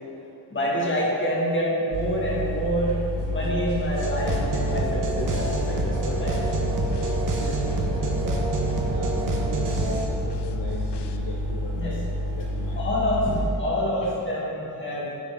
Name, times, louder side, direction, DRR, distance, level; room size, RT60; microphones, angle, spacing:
voice 1, 0.5-6.3 11.7-11.9 12.7-15.1, equal, 30° left, -5 dB, 2.2 m, -27 dB
sound 1, 1.9-13.4, equal, 80° right, 1.7 m, -29 dB
sound 2, 3.2-11.2, left 9 dB, 90° left, 0.7 m, -40 dB
sound 3, 4.0-10.1, right 3 dB, 50° right, 1.3 m, -28 dB
voice 2, 7.1-8.2 8.9-12.0 12.3-12.8 14.0-14.1, left 2 dB, 55° left, -3 dB, 1.0 m, -38 dB
11.5 x 6.0 x 3.8 m, 2.6 s
cardioid pair, 120°, 40 cm